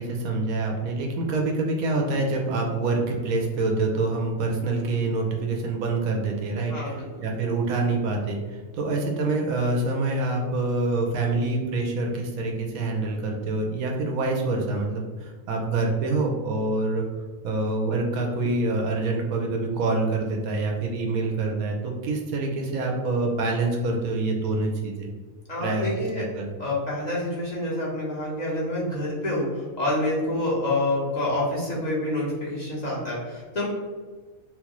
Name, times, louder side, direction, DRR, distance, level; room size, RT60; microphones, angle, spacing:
voice 1, 0.0-17.0 17.4-25.1 25.6-26.5, right 3 dB, 90° right, 1 dB, 1.1 m, -26 dB
voice 2, 6.7-7.3 25.5-26.2 26.6-33.6, left 1 dB, 35° left, -5 dB, 0.8 m, -27 dB
4.4 x 2.0 x 2.9 m, 1.4 s
omnidirectional pair, 1.5 m